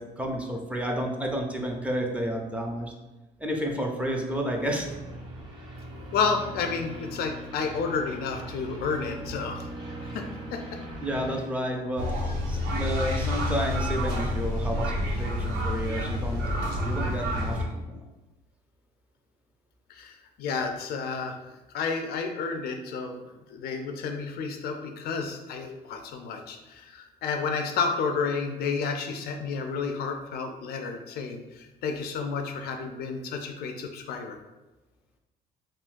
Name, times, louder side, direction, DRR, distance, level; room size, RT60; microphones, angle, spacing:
voice 1, 0.0-2.9 3.4-4.9 11.0-12.1 12.5-16.4 16.8-18.0, equal, 10° right, 0 dB, 0.4 m, -31 dB
sound 1, 4.8-11.4, right 1 dB, 25° right, 1.0 m, -40 dB
voice 2, 5.9-9.7 10.1-10.6 19.9-21.4 21.7-23.2 23.5-34.4, left 5 dB, 65° left, 4 dB, 0.4 m, -31 dB
sound 2, 12.0-17.7, left 1 dB, 70° right, 0.7 m, -28 dB
3.7 x 2.2 x 2.5 m, 1.1 s
cardioid pair, 110°, 17 cm